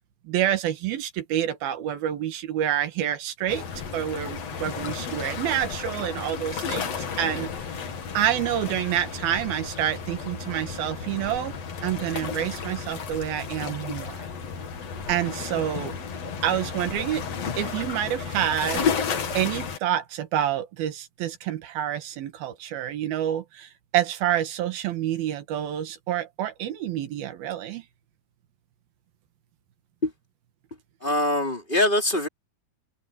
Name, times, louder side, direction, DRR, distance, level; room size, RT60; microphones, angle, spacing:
voice 1, 0.3-3.7 3.9-7.8 8.2-11.6 11.8-14.2 15.1-16.0 16.4-17.2 17.6-18.9 19.3-27.8, right 11 dB, 90° right, 3.5 m, -28 dB
sound 1, 3.5-19.8, left 6 dB, 50° left, 2.9 m, -33 dB
voice 2, 31.0-32.3, left 1 dB, 15° left, 4.3 m, -23 dB
omnidirectional pair, 4.2 m